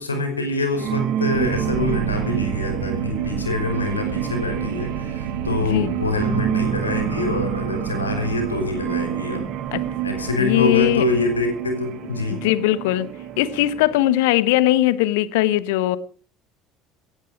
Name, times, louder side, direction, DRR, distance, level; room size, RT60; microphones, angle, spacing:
voice 1, 0.0-9.5 10.0-12.5, left 2 dB, 85° left, 5.2 m, -25 dB
sound 1, 0.7-14.0, right 9 dB, 50° right, 2.4 m, -30 dB
sound 2, 1.3-14.2, right 10 dB, 65° right, 2.2 m, -30 dB
voice 2, 10.4-11.0 12.4-13.1 13.4-16.0, left 15 dB, 65° left, 1.1 m, -19 dB
17.5 x 14.5 x 5.0 m
figure-of-eight pair, 60°, 0 cm